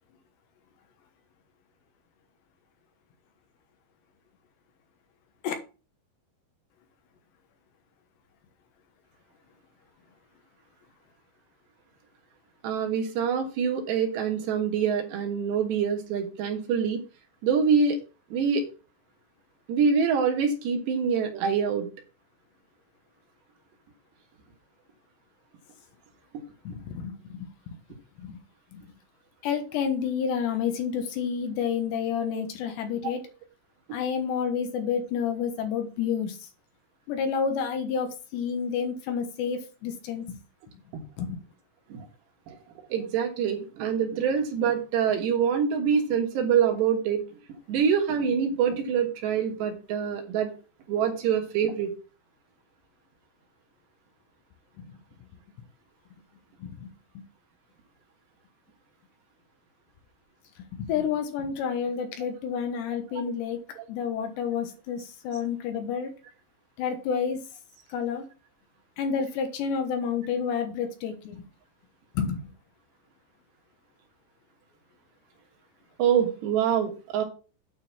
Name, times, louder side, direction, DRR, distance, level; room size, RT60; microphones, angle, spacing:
voice 1, 12.6-17.0 17.4-18.0 18.3-18.6 19.7-21.9 41.9-42.1 42.5-42.6 42.9-47.2 47.7-50.5 50.9-51.9 63.3-63.4 63.8-63.9 76.0-77.2, right 7 dB, 70° right, 3 dB, 3.5 m, -25 dB
voice 2, 26.6-27.8 28.2-28.4 28.7-28.9 29.4-33.2 33.9-36.5 37.1-40.4 41.2-41.4 56.6-57.2 60.7-63.6 63.9-66.1 66.8-67.4 67.9-68.3 69.0-71.4 72.1-72.4, left 7 dB, 75° left, 6 dB, 3.3 m, -30 dB
9.1 x 4.0 x 7.1 m, 0.34 s
omnidirectional pair, 5.4 m